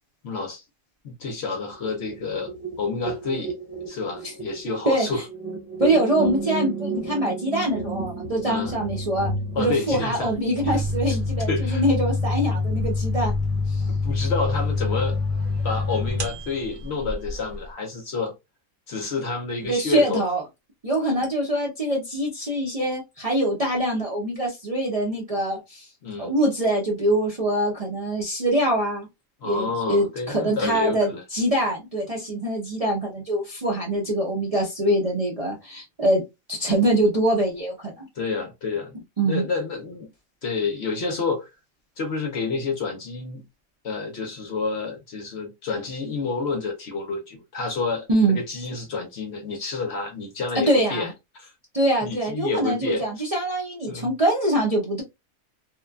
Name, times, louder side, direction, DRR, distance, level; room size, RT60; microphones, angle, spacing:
voice 1, 0.2-0.6 1.0-3.5 3.9-5.2 8.5-8.7 9.5-10.3 10.6-10.8 11.1-11.2 11.5-11.8 13.9-15.2 15.6-18.3 18.9-20.3 21.0-21.3 26.0-26.3 29.4-31.2 38.1-39.0 39.2-40.1 40.4-41.5 42.0-43.4 43.8-51.5 52.0-53.0 53.9-54.1, left 4 dB, 60° left, 0.7 m, -29 dB
sound 1, 1.7-11.3, right 3 dB, ahead, 0.9 m, -32 dB
voice 2, 4.9-5.2 5.8-9.3 9.6-13.3 13.7-13.8 19.6-20.4 20.8-25.9 26.2-29.1 29.4-36.2 36.5-38.1 39.2-39.5 48.1-48.4 50.5-51.1 51.7-55.0, right 1 dB, 40° right, 0.5 m, -24 dB
sound 2, 10.6-17.7, left 3 dB, 75° right, 1.1 m, -26 dB
3.1 x 2.2 x 2.2 m
omnidirectional pair, 1.5 m